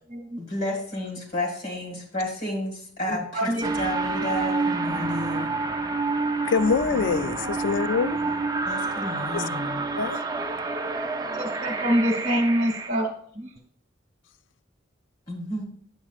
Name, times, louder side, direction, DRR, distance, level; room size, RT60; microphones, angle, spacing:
voice 1, 0.4-5.5 8.7-9.8 15.3-15.6, left 1 dB, 50° left, 2.0 m, -31 dB
sound 1, 3.6-12.9, right 3 dB, 20° right, 0.5 m, -28 dB
voice 2, 6.5-8.2 9.3-9.4 10.0-10.2, left 5 dB, 75° left, 0.4 m, -24 dB
voice 3, 11.3-13.0 13.3-13.5, equal, 45° right, 1.2 m, -25 dB
9.8 x 7.3 x 2.4 m
head